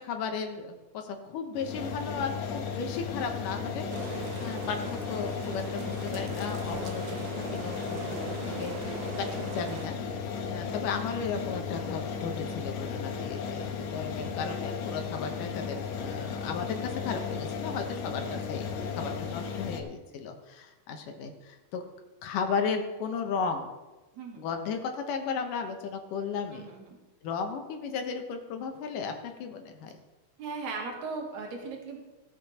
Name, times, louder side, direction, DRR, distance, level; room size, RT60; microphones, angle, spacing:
voice 1, 0.0-4.1 4.4-8.2 8.6-9.0 9.3-9.9 10.5-21.8 22.2-23.7 24.4-26.7 27.2-29.9, left 5 dB, 90° left, 5 dB, 2.8 m, -35 dB
sound 1, 1.5-19.8, left 6 dB, 70° left, 2.4 m, -35 dB
sound 2, 3.9-9.9, right 6 dB, 80° right, 2.4 m, -41 dB
voice 2, 5.8-6.2 10.4-10.7 19.3-19.7 24.1-24.5 26.5-27.0 30.4-32.0, right 4 dB, 65° right, 1 dB, 3.0 m, -39 dB
16.5 x 7.3 x 4.3 m, 1.1 s
omnidirectional pair, 3.6 m